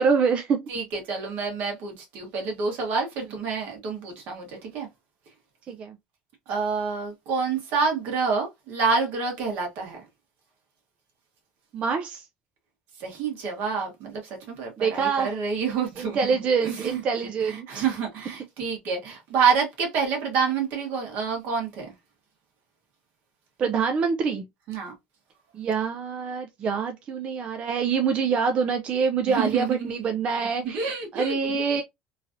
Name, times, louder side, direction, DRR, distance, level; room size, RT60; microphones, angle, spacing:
voice 1, 0.0-0.7 5.7-6.0 11.7-12.3 14.8-15.3 16.0-17.8 23.6-24.5 25.5-31.8, right 5 dB, 35° right, 0.3 m, -25 dB
voice 2, 0.7-4.9 6.5-10.0 13.0-17.0 17.4-21.9 24.7-24.9 29.3-30.1 30.6-31.6, right 5 dB, 60° right, 1.3 m, -28 dB
3.0 x 2.5 x 2.6 m
cardioid pair, 150°, 3 cm